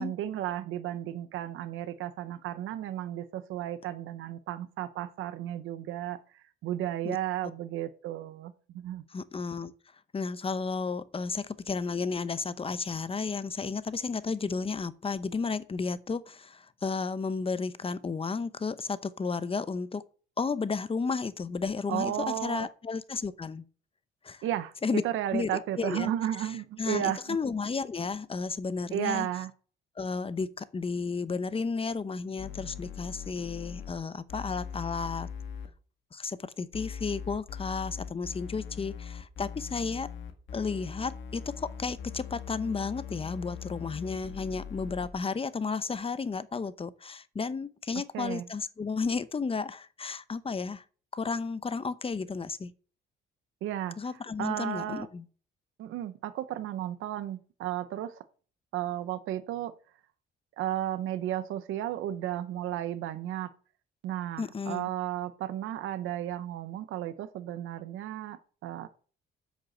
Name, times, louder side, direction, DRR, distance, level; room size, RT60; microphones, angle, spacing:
voice 1, 0.0-9.0 21.9-22.7 24.4-27.4 28.9-29.5 48.1-48.5 53.6-54.0 54.4-55.1 55.8-58.2 58.7-59.7 60.6-63.5 64.0-68.9, right 12 dB, 85° right, 0.8 m, -34 dB
voice 2, 9.1-9.7 10.1-20.0 20.4-23.6 24.2-24.4 24.8-25.0 25.3-25.5 25.8-29.3 30.0-35.3 36.1-40.1 40.5-50.8 51.1-52.7 54.0-55.2 64.4-64.9, left 4 dB, 30° left, 0.8 m, -33 dB
sound 1, 32.4-33.9 34.3-35.7 36.7-45.1, left 7 dB, 75° left, 1.7 m, -41 dB
7.8 x 6.7 x 7.8 m
cardioid pair, 90°, 20 cm